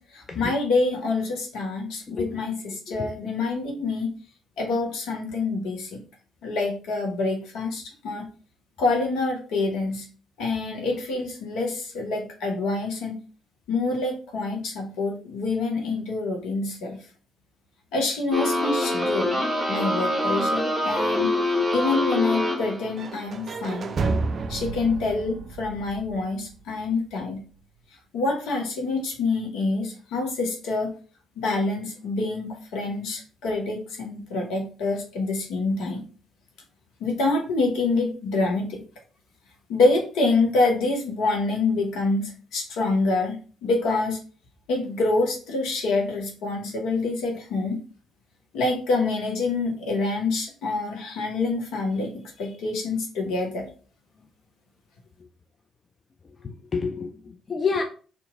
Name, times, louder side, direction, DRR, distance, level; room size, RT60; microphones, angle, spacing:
voice 1, 0.1-4.1 4.6-6.0 6.4-8.3 8.8-10.0 10.4-13.2 13.7-17.0 17.9-19.4 19.7-21.3 21.7-24.0 24.5-27.4 28.1-30.9 31.4-36.0 37.0-38.8 39.7-43.4 43.6-44.2 44.7-47.8 48.5-53.7, left 3 dB, 70° left, 0.9 m, -26 dB
sound 1, 18.3-22.9, left 1 dB, 5° right, 1.5 m, -25 dB
sound 2, 23.0-26.9, right 3 dB, 45° right, 0.3 m, -31 dB
voice 2, 56.4-57.8, left 5 dB, 40° left, 0.4 m, -29 dB
2.8 x 2.6 x 3.6 m
hypercardioid pair, 50°, 0 cm